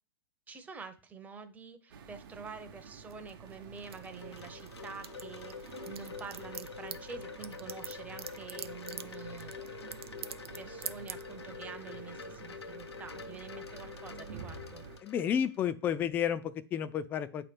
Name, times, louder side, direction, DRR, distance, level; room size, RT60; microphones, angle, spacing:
voice 1, 0.5-9.9 10.6-14.8, right 5 dB, 10° right, 8 dB, 0.7 m, -47 dB
sound 1, 1.9-15.0, right 6 dB, 55° right, 0.9 m, -50 dB
sound 2, 3.1-4.7 4.9-10.6 10.8-11.2, right 9 dB, 75° right, 0.5 m, -42 dB
Wind chime, 3.3-15.6, left 6 dB, 90° left, 0.9 m, -46 dB
voice 2, 15.0-17.5, left 9 dB, 15° left, 12 dB, 0.3 m, -31 dB
8.4 x 3.0 x 5.0 m, 0.37 s
hypercardioid pair, 130°, 13 cm